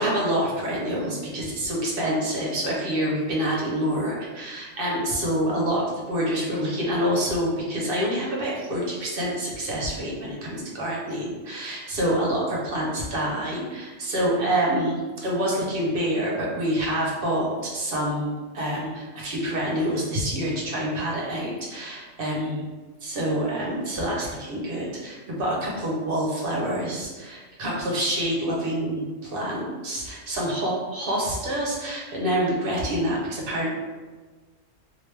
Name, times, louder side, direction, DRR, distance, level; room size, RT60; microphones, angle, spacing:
voice 1, 0.0-22.6 23.0-33.7, right 1 dB, 50° right, -4 dB, 0.9 m, -27 dB
3.1 x 2.6 x 3.2 m, 1.3 s
omnidirectional pair, 1.4 m